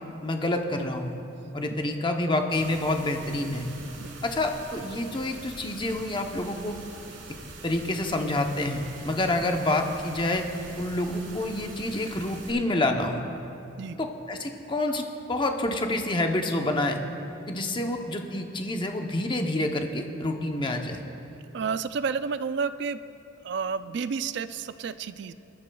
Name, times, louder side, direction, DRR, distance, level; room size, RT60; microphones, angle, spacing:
voice 1, 0.2-1.1 1.5-3.7 4.2-6.8 7.6-10.4 10.8-13.2 14.0-17.0 17.5-21.0, left 1 dB, 25° left, 4 dB, 0.7 m, -28 dB
sound 1, 2.5-12.5, right 2 dB, 80° right, 2.0 m, -44 dB
voice 2, 21.5-23.0 23.4-25.3, right 5 dB, 60° right, 13 dB, 0.4 m, -31 dB
20.5 x 12.5 x 2.3 m, 2.9 s
head